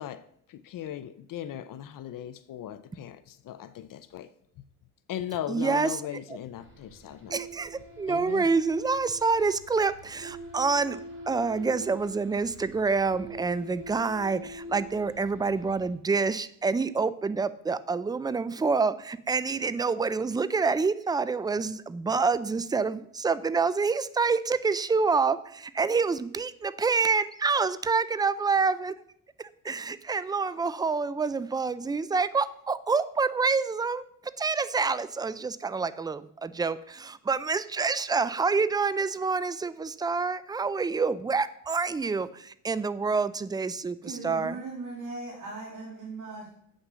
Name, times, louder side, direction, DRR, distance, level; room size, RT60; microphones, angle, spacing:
voice 1, 0.0-4.3 5.1-7.4 8.1-8.5, left 11 dB, 70° left, 0.6 m, -38 dB
voice 2, 5.5-5.9 7.3-11.0 11.3-28.9 29.4-34.0 34.4-44.6, right 4 dB, 10° right, 0.4 m, -27 dB
sound 1, 6.6-15.9, right 1 dB, 35° right, 3.1 m, -44 dB
voice 3, 44.0-46.5, right 3 dB, 60° right, 2.6 m, -38 dB
8.2 x 6.4 x 6.2 m
cardioid pair, 110°, 34 cm